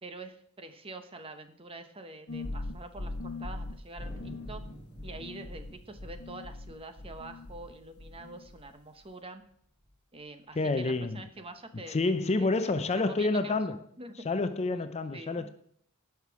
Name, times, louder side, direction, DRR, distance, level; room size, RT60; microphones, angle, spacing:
voice 1, 0.0-4.6 5.0-9.4 10.1-13.6 14.0-14.3 14.7-14.8 15.1-15.5, right 2 dB, 25° right, 0.9 m, -46 dB
sound 1, 2.3-7.7 8.0-8.7, left 2 dB, 80° left, 1.0 m, -40 dB
Thunder, 4.0-8.8 9.1-9.2 9.4-9.9 10.4-11.6, equal, 10° right, 5.6 m, -53 dB
voice 2, 10.6-11.2 11.9-13.8 14.3-15.5, left 3 dB, 30° left, 0.5 m, -28 dB
16.5 x 5.9 x 4.7 m
head